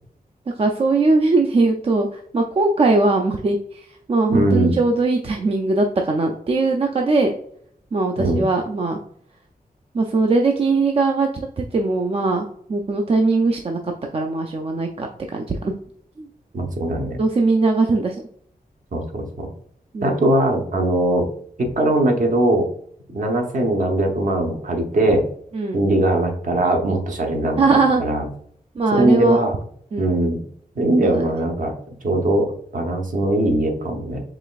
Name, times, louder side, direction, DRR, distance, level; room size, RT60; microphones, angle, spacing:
voice 1, 0.6-7.3 7.9-9.0 9.9-13.8 14.1-15.7 16.2-16.3 17.2-18.2 19.9-20.2 25.5-25.8 27.6-28.0 28.8-29.5 29.9-30.1 31.0-31.3, right 3 dB, 40° right, 3 dB, 0.4 m, -20 dB
voice 2, 4.3-4.8 8.2-8.4 16.5-17.2 18.9-19.5 20.0-21.3 21.6-22.7 23.1-25.3 25.7-27.6 28.0-28.2 28.9-29.5 30.0-30.4 30.8-32.5 32.7-34.2, right 1 dB, 60° right, 2 dB, 0.9 m, -20 dB
4.9 x 3.3 x 2.3 m, 0.64 s
wide cardioid pair, 150°, 15 cm